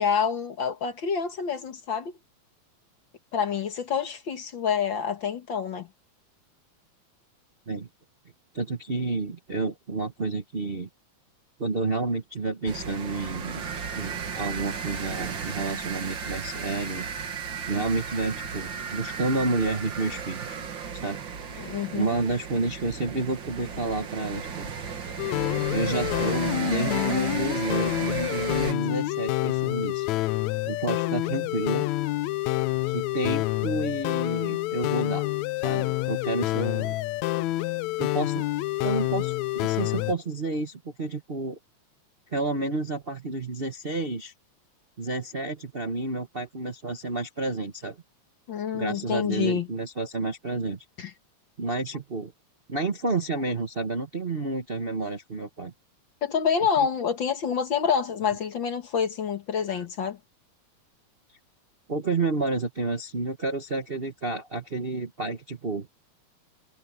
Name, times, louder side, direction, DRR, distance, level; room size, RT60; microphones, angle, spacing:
voice 1, 0.0-2.1 3.3-5.9 21.6-22.1 48.5-49.7 51.0-51.1 56.2-60.2, left 7 dB, 45° left, 1.9 m, -27 dB
voice 2, 8.5-10.9 11.6-13.7 13.9-17.1 17.7-20.6 20.9-21.2 21.5-24.7 25.7-30.1 30.6-31.8 32.8-35.3 35.6-37.0 38.0-38.5 38.8-41.6 42.3-44.3 45.0-48.0 48.7-50.8 51.6-52.3 52.7-55.7 56.8-56.9 59.7-59.9 61.9-65.9, right 3 dB, 85° right, 0.5 m, -30 dB
sound 1, 12.7-28.7, right 6 dB, 45° right, 2.1 m, -35 dB
sound 2, 25.2-40.1, left 18 dB, 80° left, 1.9 m, -28 dB
omnidirectional pair, 3.3 m